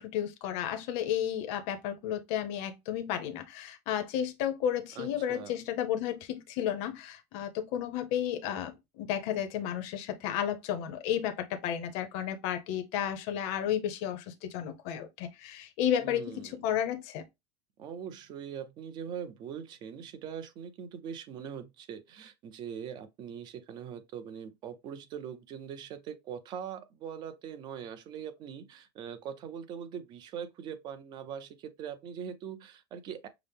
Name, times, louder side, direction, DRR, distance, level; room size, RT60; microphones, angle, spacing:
voice 1, 0.0-17.2, left 10 dB, 45° left, 0.7 m, -32 dB
voice 2, 4.9-5.6 16.0-16.6 17.8-33.3, right 8 dB, 30° right, 0.6 m, -42 dB
5.9 x 2.1 x 3.4 m
cardioid pair, 180°, 15 cm